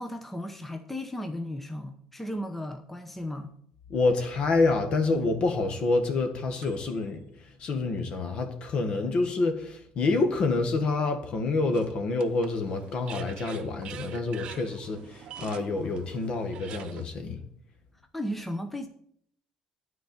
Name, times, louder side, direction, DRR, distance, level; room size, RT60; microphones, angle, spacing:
voice 1, 0.0-3.5 18.1-18.9, left 1 dB, 10° left, 0.8 m, -35 dB
voice 2, 3.9-17.4, left 3 dB, 55° left, 1.4 m, -27 dB
sound 1, 5.4-7.1 7.8-7.9 11.7-17.1, right 8 dB, 55° right, 0.7 m, -44 dB
9.2 x 4.6 x 6.9 m
cardioid pair, 110°, 2 cm